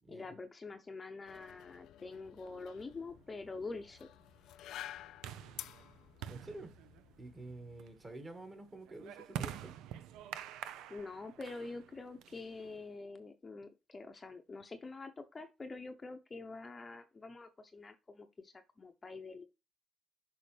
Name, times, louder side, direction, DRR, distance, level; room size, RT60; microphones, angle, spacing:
voice 1, 0.1-4.1 10.9-19.4, left 3 dB, 25° left, 0.8 m, -46 dB
sound 1, 1.2-8.1, left 12 dB, 75° left, 0.4 m, -52 dB
sound 2, 2.5-12.9, right 10 dB, 85° right, 0.6 m, -48 dB
voice 2, 6.3-6.7 7.2-9.7, right 2 dB, 25° right, 1.8 m, -49 dB
6.6 x 5.0 x 3.3 m
cardioid pair, 115°, 0 cm